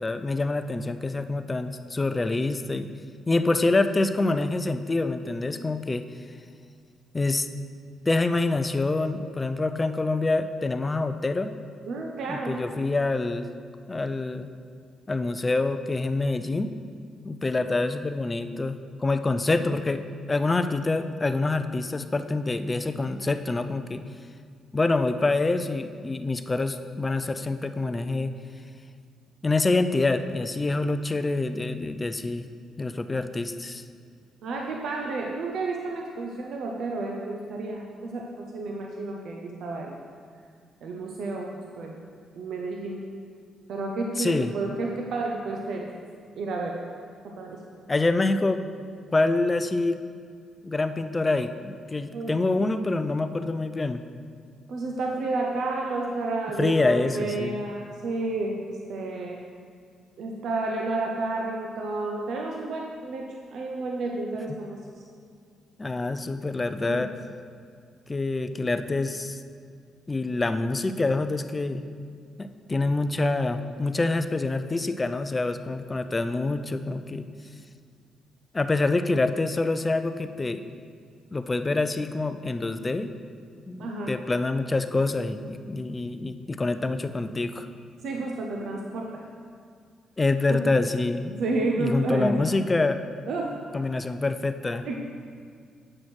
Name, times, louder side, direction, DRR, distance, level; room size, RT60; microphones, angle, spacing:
voice 1, 0.0-2.9 3.3-6.0 7.1-7.5 8.1-11.5 12.3-13.5 13.9-14.5 15.1-16.7 17.2-20.0 20.3-24.0 24.7-28.3 29.4-32.5 32.8-33.8 44.2-44.5 47.9-48.6 49.1-50.0 50.6-54.0 56.6-57.6 65.8-67.1 68.1-69.4 70.1-71.8 72.4-77.3 78.5-80.6 81.3-83.1 83.7-87.7 90.2-91.3 91.8-93.0 93.7-94.9, left 2 dB, 25° left, 9 dB, 0.4 m, -26 dB
voice 2, 11.9-12.6 34.4-40.0 40.8-41.5 41.8-42.0 42.3-43.0 43.7-45.9 46.3-46.8 47.2-47.6 52.1-52.3 54.7-59.4 60.2-64.8 66.8-67.1 83.8-84.1 88.0-89.2 90.5-90.8 91.3-92.5 93.3-93.6 94.8-95.0, right 2 dB, 70° right, 0 dB, 0.6 m, -31 dB
8.6 x 6.1 x 3.2 m, 2.1 s
cardioid pair, 90°, 0 cm